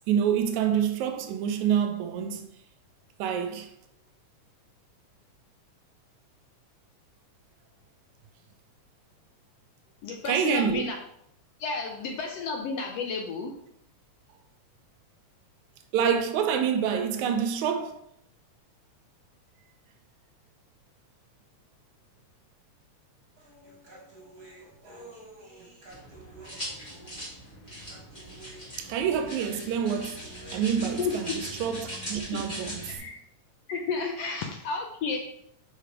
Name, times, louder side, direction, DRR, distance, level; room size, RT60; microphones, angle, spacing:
voice 1, 0.1-2.5 3.2-3.7 10.3-10.8 15.9-18.0 28.8-33.0, right 8 dB, 80° right, 2.0 m, -27 dB
voice 2, 10.0-11.0 11.6-13.5 31.0-31.2 32.9-33.1 33.7-35.2, left 4 dB, 70° left, 1.6 m, -31 dB
Human voice, 23.4-31.4, right 2 dB, 40° right, 1.6 m, -50 dB
sound 1, 25.9-33.0, equal, 20° left, 2.0 m, -40 dB
5.1 x 4.9 x 4.6 m
omnidirectional pair, 3.4 m